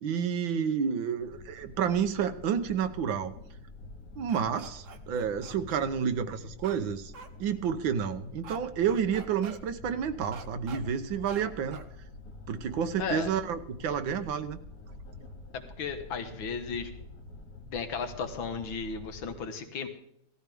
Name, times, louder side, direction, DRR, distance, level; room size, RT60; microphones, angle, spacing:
voice 1, 0.0-3.4 4.2-7.1 7.4-11.8 12.5-14.6, right 7 dB, 75° right, 9 dB, 1.7 m, -30 dB
sound 1, 1.2-19.3, left 2 dB, 45° left, 2.8 m, -47 dB
sound 2, 4.3-5.8 6.6-6.8 7.1-7.3 8.4-8.6 8.9-9.6 10.3-10.8 11.3-11.4 11.7-11.9, right 6 dB, 50° right, 1.2 m, -46 dB
voice 2, 13.0-13.3 15.5-16.9 17.7-19.9, left 5 dB, 85° left, 8 dB, 2.0 m, -35 dB
17.0 x 13.5 x 3.5 m, 0.75 s
omnidirectional pair, 2.1 m